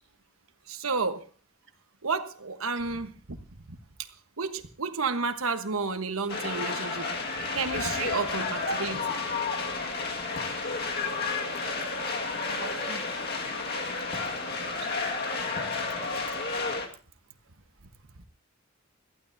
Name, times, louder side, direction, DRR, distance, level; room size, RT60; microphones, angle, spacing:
voice 1, 0.7-1.3 2.0-3.4 3.7-3.8 4.4-7.1 7.5-9.2, right 4 dB, 80° right, 9 dB, 1.2 m, -31 dB
sound 1, 6.3-16.9, left 3 dB, 50° left, 1.9 m, -31 dB
voice 2, 12.4-13.8 14.4-15.1, right 3 dB, 60° right, 4 dB, 2.1 m, -45 dB
21.5 x 14.5 x 2.7 m, 0.36 s
head